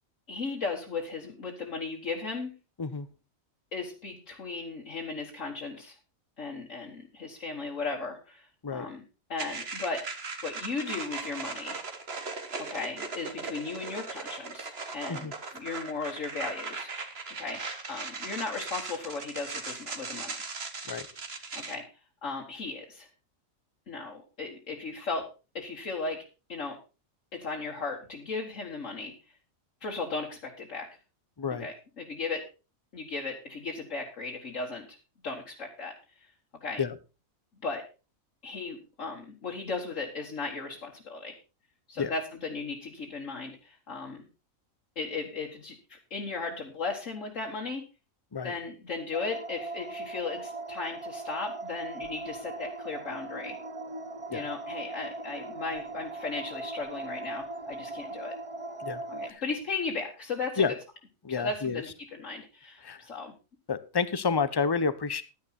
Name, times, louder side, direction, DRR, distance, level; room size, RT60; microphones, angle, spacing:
voice 1, 0.3-2.5 3.7-6.0 6.4-9.0 9.3-10.0 10.4-11.8 12.6-16.9 17.4-17.6 17.9-20.5 21.5-21.9 22.2-23.1 23.9-25.3 25.5-26.2 26.5-26.8 27.3-29.1 29.8-30.9 31.5-32.4 32.9-35.0 35.2-36.3 36.6-36.8 37.6-37.9 38.4-41.4 41.9-44.3 45.0-47.8 48.4-53.6 54.3-58.4 59.1-60.6 61.3-63.3, left 4 dB, 65° left, -1 dB, 1.9 m, -36 dB
sound 1, 9.4-21.8, right 4 dB, 50° right, 1.7 m, -38 dB
sound 2, 49.1-59.3, right 2 dB, 30° right, 0.8 m, -39 dB
voice 2, 61.2-61.8 62.8-63.0 63.7-65.2, left 5 dB, 25° left, 14 dB, 0.5 m, -29 dB
11.5 x 10.0 x 4.3 m, 0.31 s
omnidirectional pair, 1.4 m